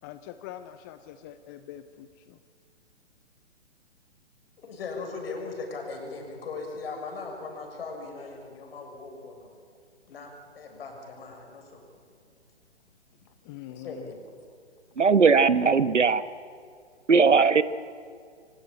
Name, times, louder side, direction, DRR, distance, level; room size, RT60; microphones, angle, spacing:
voice 1, 0.0-2.4 13.4-14.1, left 12 dB, 20° left, 10 dB, 0.6 m, -44 dB
voice 2, 4.6-9.5 10.1-10.3 10.5-11.8 13.7-14.2, left 4 dB, 55° left, 3 dB, 6.7 m, -38 dB
voice 3, 15.0-16.2 17.1-17.6, right 5 dB, 80° right, 14 dB, 1.2 m, -19 dB
24.5 x 18.5 x 8.9 m, 2.2 s
figure-of-eight pair, 125°, 36 cm